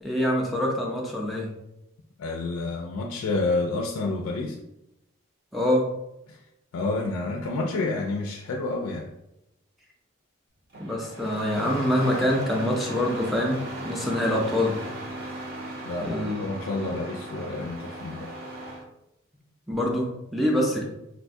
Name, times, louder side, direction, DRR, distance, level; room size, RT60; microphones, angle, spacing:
voice 1, 0.0-1.5 5.5-5.9 10.8-14.8 16.0-16.4 16.9-17.0 19.7-20.8, left 1 dB, ahead, -2 dB, 0.4 m, -25 dB
voice 2, 2.2-4.6 6.3-6.4 6.7-9.1 15.8-18.3, left 3 dB, 90° left, 1 dB, 0.3 m, -29 dB
Engine starting, 10.7-18.8, right 1 dB, 45° right, 0.6 m, -37 dB
4.0 x 2.2 x 2.6 m, 0.88 s
head